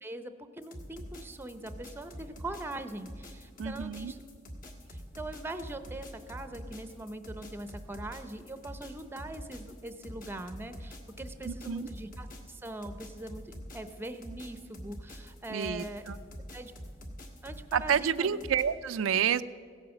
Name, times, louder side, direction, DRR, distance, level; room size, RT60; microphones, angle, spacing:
voice 1, 0.0-4.2 4.9-16.1 16.5-16.7 17.4-18.4, right 2 dB, 10° right, 10 dB, 0.6 m, -42 dB
sound 1, 0.6-18.6, equal, 45° left, 1.6 m, -45 dB
voice 2, 3.6-4.1 11.4-11.9 15.5-16.2 17.7-19.4, right 8 dB, 85° right, 12 dB, 0.4 m, -29 dB
16.0 x 8.8 x 7.1 m, 2.1 s
head